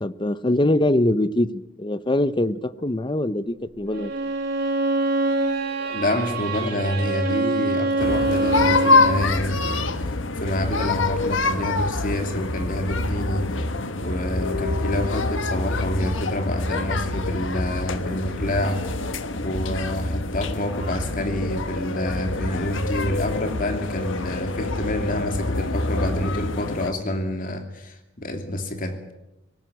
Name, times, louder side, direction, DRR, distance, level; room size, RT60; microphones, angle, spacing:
voice 1, 0.0-4.1, left 1 dB, 25° left, 15 dB, 0.7 m, -23 dB
Bowed string instrument, 3.9-9.3, right 2 dB, 50° right, 3.4 m, -24 dB
voice 2, 5.8-13.6 14.0-18.9 19.4-29.1, left 1 dB, 45° left, 6 dB, 2.7 m, -28 dB
sound 1, 8.0-26.9, left 3 dB, 80° left, 1.3 m, -26 dB
19.5 x 17.0 x 9.3 m, 0.97 s
head